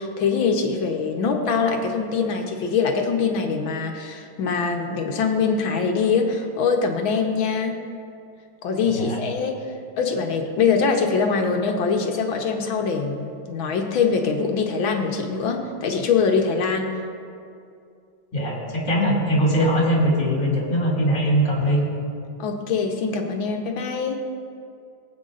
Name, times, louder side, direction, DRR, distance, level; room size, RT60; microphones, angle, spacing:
voice 1, 0.0-7.8 8.6-9.6 10.0-16.9 22.4-24.2, left 5 dB, 70° left, 3 dB, 1.7 m, -23 dB
voice 2, 8.9-9.2 18.3-21.8, equal, 35° left, -3 dB, 2.6 m, -21 dB
23.0 x 8.5 x 2.5 m, 2.4 s
omnidirectional pair, 2.3 m